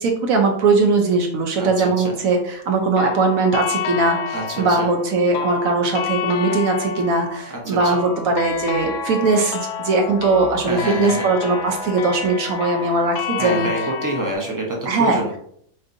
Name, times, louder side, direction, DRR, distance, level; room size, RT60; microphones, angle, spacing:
voice 1, 0.0-13.7 14.9-15.2, right 3 dB, 65° right, 3 dB, 1.0 m, -20 dB
voice 2, 1.6-2.1 4.3-4.9 7.5-8.0 10.6-11.3 13.4-15.4, right 1 dB, 20° right, -1 dB, 0.5 m, -27 dB
sound 1, 3.0-14.3, left 6 dB, 80° left, 1.1 m, -29 dB
4.4 x 3.9 x 2.6 m, 0.66 s
omnidirectional pair, 1.7 m